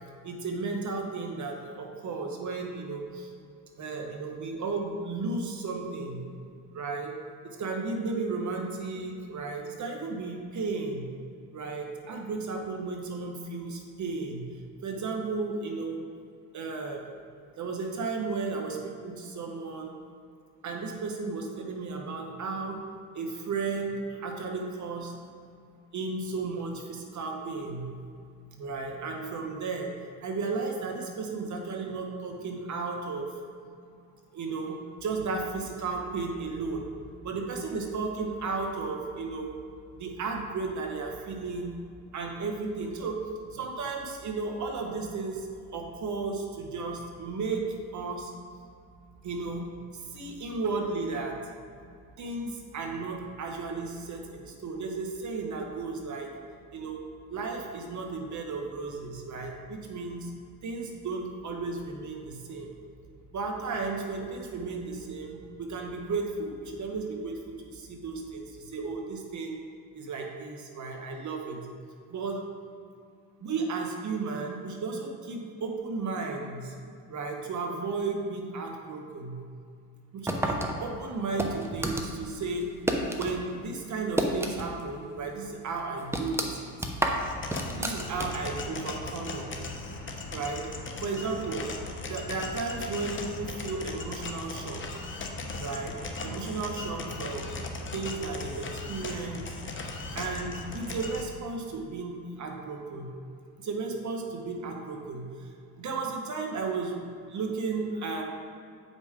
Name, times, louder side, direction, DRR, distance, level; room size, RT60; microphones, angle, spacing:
voice 1, 0.2-3.3 3.8-6.3 6.7-7.1 7.4-11.1 11.5-14.5 14.8-16.0 16.5-17.1 17.6-18.8 19.0-19.9 20.6-22.8 23.1-25.1 25.9-27.9 28.6-29.9 30.2-33.3 34.3-36.9 37.2-39.5 39.9-41.8 42.1-43.2 43.5-45.5 45.7-47.7 47.9-48.3 49.2-49.7 49.9-51.4 52.2-56.3 56.7-57.0 57.3-60.3 60.6-62.7 63.3-69.6 69.9-71.6 72.1-72.4 73.4-76.7 77.1-79.4 80.1-82.7 83.1-86.7 87.8-89.6 90.3-90.7 91.0-91.7 92.0-94.8 95.6-97.5 97.9-99.5 100.1-103.1 103.6-105.5 105.8-108.2, right 4 dB, 45° right, 1 dB, 1.4 m, -34 dB
sound 1, 80.3-83.4 83.7-84.9 85.2-85.3 85.7-88.6, right 1 dB, 5° right, 0.8 m, -30 dB
sound 2, 87.1-101.3, left 3 dB, 30° left, 0.9 m, -38 dB
8.1 x 5.3 x 3.7 m, 2.3 s
supercardioid pair, 85°, 40 cm